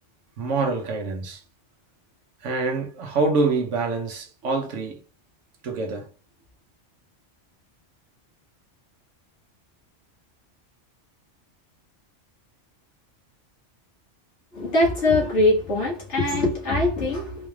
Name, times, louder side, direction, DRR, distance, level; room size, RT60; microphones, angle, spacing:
voice 1, 0.4-1.4 2.4-5.0 5.6-6.1, right 3 dB, 85° right, 1.2 m, -25 dB
voice 2, 14.5-17.5, left 2 dB, 70° left, 2.0 m, -22 dB
4.3 x 3.2 x 2.3 m
omnidirectional pair, 1.2 m